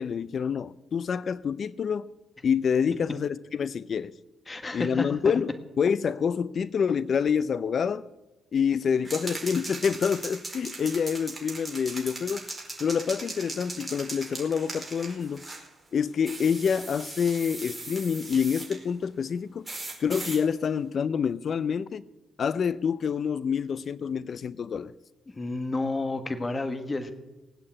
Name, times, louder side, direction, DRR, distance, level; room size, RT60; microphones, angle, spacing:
voice 1, 0.0-2.1 2.4-4.1 4.7-8.1 8.5-12.4 12.8-15.4 15.9-19.7 20.0-22.0 22.4-24.9, left 7 dB, 50° left, 0.5 m, -27 dB
voice 2, 4.5-5.3 25.3-27.1, left 2 dB, 25° left, 1.5 m, -31 dB
sound 1, 9.0-15.7 16.2-18.8 19.6-20.4, right 2 dB, 10° right, 4.8 m, -39 dB
19.0 x 8.7 x 8.6 m
cardioid pair, 90°, 0 cm